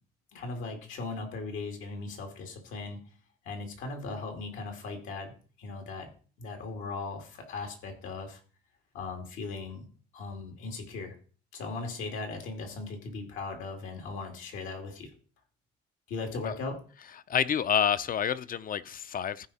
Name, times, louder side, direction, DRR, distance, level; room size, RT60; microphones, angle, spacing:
voice 1, 0.3-3.0 3.4-6.1 6.4-8.4 8.9-9.9 10.1-11.2 11.5-15.1 16.1-16.8, left 3 dB, 90° left, 2.4 m, -38 dB
voice 2, 17.3-19.5, left 8 dB, 45° left, 0.5 m, -28 dB
14.5 x 4.9 x 4.2 m
cardioid pair, 90°, 20 cm